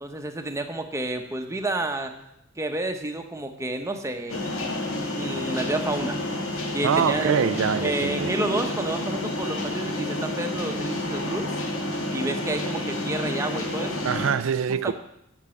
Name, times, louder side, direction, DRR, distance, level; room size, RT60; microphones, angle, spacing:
voice 1, 0.0-2.1 2.6-4.7 5.2-6.2 6.7-7.3 7.8-11.5 12.1-14.0 14.8-14.9, right 2 dB, 15° right, 0.9 m, -30 dB
sound 1, 4.3-14.3, left 1 dB, 85° left, 1.9 m, -29 dB
voice 2, 6.8-8.3 14.0-14.9, right 7 dB, 70° right, 0.4 m, -24 dB
8.2 x 6.7 x 8.4 m
head